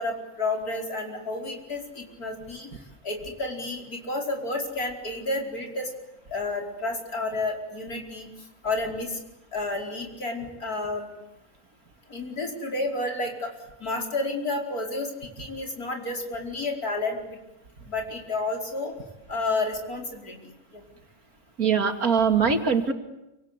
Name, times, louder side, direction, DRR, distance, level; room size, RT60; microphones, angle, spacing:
voice 1, 0.0-2.7 3.0-5.9 6.3-8.3 8.6-9.2 9.5-11.1 12.1-13.5 13.8-17.4 17.9-18.9 19.3-20.4 20.7-20.8, left 2 dB, 85° left, 2 dB, 5.4 m, -30 dB
voice 2, 21.6-22.9, right 6 dB, 75° right, 6 dB, 3.0 m, -22 dB
27.5 x 26.0 x 8.3 m, 0.91 s
omnidirectional pair, 1.5 m